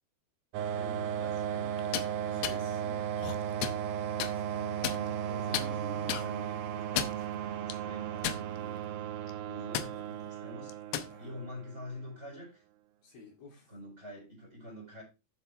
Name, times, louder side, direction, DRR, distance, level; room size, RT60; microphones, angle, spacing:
sound 1, 0.5-11.9, right 9 dB, 85° right, 2.8 m, -35 dB
voice 1, 0.7-1.8 2.2-2.7 4.5-8.9 9.4-10.7 11.2-12.6 13.7-15.0, left 1 dB, 15° right, 4.0 m, -47 dB
sound 2, 1.8-2.1 2.4-2.6 3.2-3.8 4.2-4.3 4.8-5.3 5.5-5.7 6.1-6.3 6.8-7.2 7.7-7.8 8.2-8.8 9.1-9.3 9.7-9.9 10.7-11.1, left 11 dB, 75° left, 2.8 m, -33 dB
voice 2, 2.3-3.2 4.1-4.6 5.2-5.8 11.1-11.4 13.0-13.7, left 3 dB, 60° left, 4.7 m, -53 dB
11.5 x 7.1 x 3.4 m
omnidirectional pair, 4.9 m